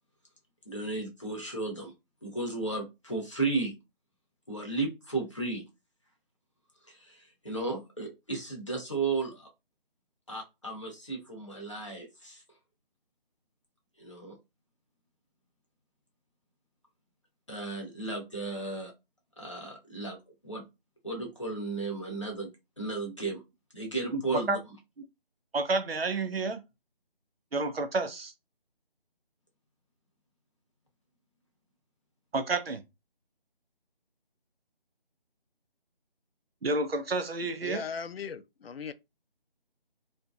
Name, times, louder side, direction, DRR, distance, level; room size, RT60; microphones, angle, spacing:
voice 1, 0.7-1.9 2.2-3.7 4.5-5.6 6.9-9.5 10.3-12.4 14.0-14.4 17.5-18.9 19.4-20.2 20.4-20.6 21.0-22.5 22.8-23.4 23.7-24.6, right 3 dB, 30° left, 0.7 m, -34 dB
voice 2, 24.1-24.6 25.5-26.6 27.5-28.3 32.3-32.8 36.6-37.8, right 3 dB, 80° right, 0.7 m, -30 dB
voice 3, 37.6-38.9, left 6 dB, 80° left, 0.4 m, -38 dB
2.7 x 2.5 x 2.3 m
figure-of-eight pair, 180°, 30 cm